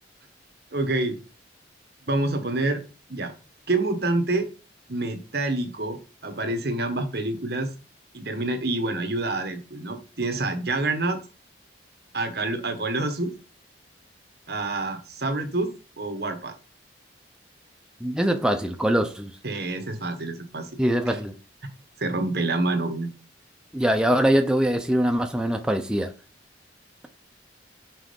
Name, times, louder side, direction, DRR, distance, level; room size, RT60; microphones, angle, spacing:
voice 1, 0.7-1.2 2.1-2.8 3.1-3.3 3.7-4.5 4.9-7.7 8.1-11.2 12.1-13.3 14.5-15.7 16.0-16.5 19.4-20.8 21.1-21.2 22.0-23.1, right 2 dB, 55° right, 1.3 m, -27 dB
voice 2, 18.0-19.3 20.8-21.3 23.7-26.1, equal, 5° right, 0.6 m, -23 dB
6.2 x 4.2 x 5.2 m
head